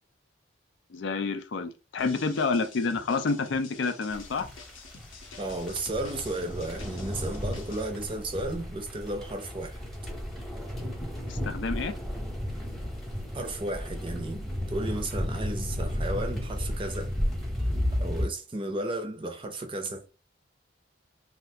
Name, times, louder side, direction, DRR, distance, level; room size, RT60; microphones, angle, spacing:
voice 1, 0.9-4.5 11.2-11.9, left 4 dB, 65° left, 0.4 m, -29 dB
sound 1, 2.0-7.9, left 4 dB, 90° left, 0.8 m, -48 dB
sound 2, 4.1-18.2, equal, ahead, 0.8 m, -33 dB
voice 2, 5.4-9.8 13.3-17.1 17.9-20.0, right 2 dB, 25° right, 0.5 m, -34 dB
2.7 x 2.4 x 3.3 m
head